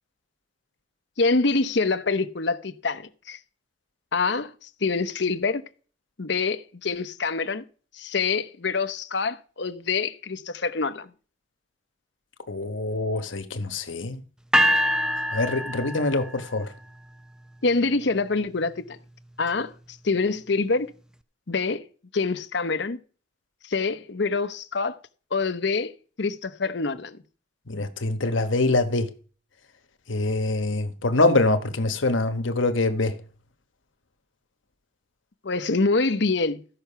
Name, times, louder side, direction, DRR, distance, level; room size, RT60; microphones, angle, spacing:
voice 1, 1.2-3.4 4.1-5.6 6.2-7.6 7.9-11.1 17.6-19.0 19.4-20.9 21.5-21.8 22.1-23.0 23.6-25.0 25.3-25.9 26.2-27.2 35.4-36.6, left 3 dB, 65° left, 0.9 m, -25 dB
voice 2, 12.5-14.2 15.3-16.7 27.7-29.1 30.1-33.1, left 2 dB, 90° left, 1.2 m, -24 dB
sound 1, 14.5-16.6, equal, 5° right, 0.5 m, -24 dB
14.5 x 5.9 x 5.7 m
head